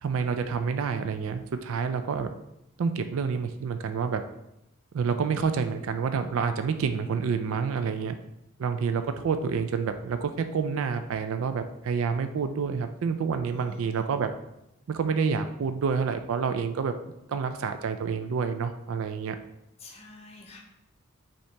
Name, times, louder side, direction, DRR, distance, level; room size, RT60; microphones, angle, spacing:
voice 1, 0.0-2.3 2.8-4.2 4.9-8.2 8.6-14.3 14.9-16.9 17.3-19.4, right 5 dB, 65° right, 8 dB, 0.3 m, -28 dB
voice 2, 13.5-14.1 19.8-20.6, left 2 dB, 30° left, 1 dB, 0.6 m, -48 dB
5.4 x 2.9 x 3.3 m, 0.85 s
head